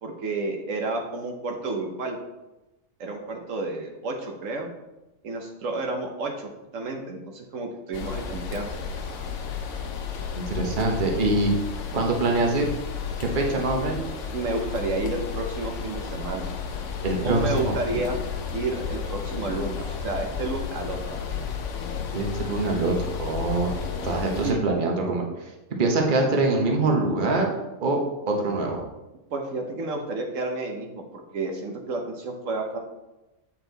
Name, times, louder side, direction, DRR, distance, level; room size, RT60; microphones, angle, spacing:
voice 1, 0.0-2.2 3.0-4.7 5.2-8.8 14.3-16.5 17.2-18.2 18.5-21.0 24.4-24.7 29.3-32.8, right 2 dB, 75° right, 2 dB, 1.2 m, -31 dB
sound 1, 7.9-24.5, left 6 dB, 70° left, 1.1 m, -33 dB
voice 2, 10.4-11.5 11.9-12.7 13.2-14.1 17.0-18.0 22.1-23.7 24.0-25.2 25.8-27.5 27.8-28.0 28.3-28.8, right 2 dB, 40° right, 1 dB, 1.1 m, -24 dB
7.7 x 4.5 x 3.9 m, 1.0 s
omnidirectional pair, 1.4 m